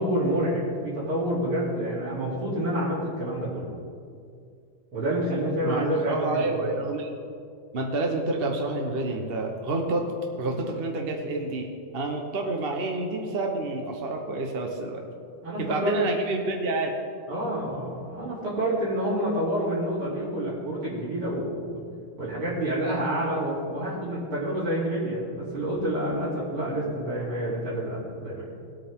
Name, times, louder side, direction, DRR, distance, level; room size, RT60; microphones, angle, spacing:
voice 1, 0.0-3.7 4.9-6.6 15.4-16.0 17.3-21.8 22.2-28.5, right 1 dB, 80° right, -10 dB, 4.0 m, -28 dB
voice 2, 5.6-7.2 7.7-10.0 10.4-15.0 15.6-16.9, right 2 dB, 40° right, 2 dB, 0.8 m, -29 dB
19.5 x 8.8 x 3.7 m, 2.3 s
omnidirectional pair, 2.3 m